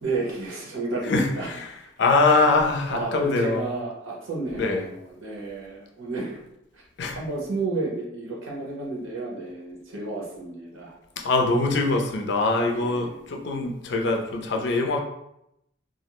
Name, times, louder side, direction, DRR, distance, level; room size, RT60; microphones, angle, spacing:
voice 1, 0.0-1.5 2.2-2.6 2.9-6.4 6.7-6.8 7.1-10.9 12.7-13.1, right 2 dB, 90° right, -3 dB, 0.8 m, -31 dB
voice 2, 1.1-1.7 2.0-3.7 4.6-4.8 7.0-7.2 11.2-15.0, left 3 dB, 60° left, 2 dB, 0.4 m, -23 dB
2.4 x 2.0 x 2.9 m, 0.81 s
head